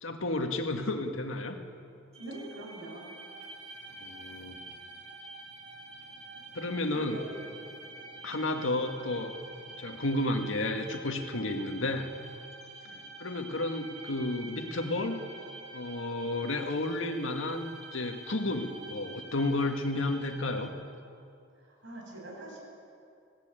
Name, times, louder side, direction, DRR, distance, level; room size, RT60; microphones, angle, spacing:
voice 1, 0.0-1.6 4.0-4.6 6.5-7.2 8.2-9.4 9.8-12.1 13.2-15.2 15.7-20.7, left 2 dB, 85° left, 4 dB, 1.7 m, -32 dB
sound 1, 2.1-20.7, right 2 dB, 35° right, 2.6 m, -47 dB
voice 2, 2.2-3.1 6.9-7.4 12.8-13.0 21.6-22.6, right 1 dB, 65° right, -1 dB, 6.7 m, -43 dB
19.0 x 16.5 x 9.0 m, 2.5 s
head